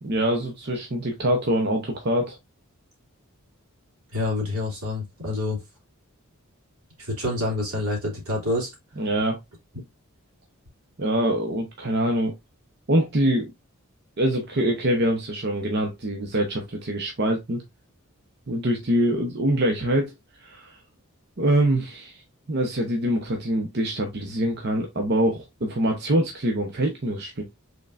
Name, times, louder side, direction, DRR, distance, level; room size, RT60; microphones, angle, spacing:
voice 1, 0.0-2.4 9.0-9.4 11.0-12.3 12.9-13.5 14.2-17.6 18.5-20.1 20.4-20.7 21.4-22.2 22.5-27.4, right 1 dB, 50° right, 0.9 m, -24 dB
voice 2, 4.1-5.6 7.0-8.7, left 2 dB, 85° right, 2.6 m, -27 dB
5.5 x 3.8 x 2.5 m
head